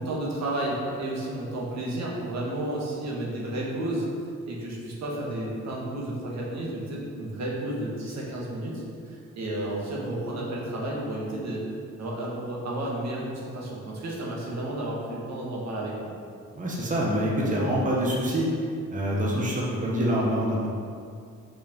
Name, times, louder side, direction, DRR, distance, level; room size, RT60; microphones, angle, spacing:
voice 1, 0.0-4.1 4.5-11.6 12.0-16.1, right 1 dB, 65° right, -4 dB, 1.8 m, -32 dB
voice 2, 16.5-18.5 18.9-20.7, equal, 25° right, -4 dB, 1.3 m, -25 dB
5.5 x 4.9 x 5.4 m, 2.3 s
cardioid pair, 90°, 30 cm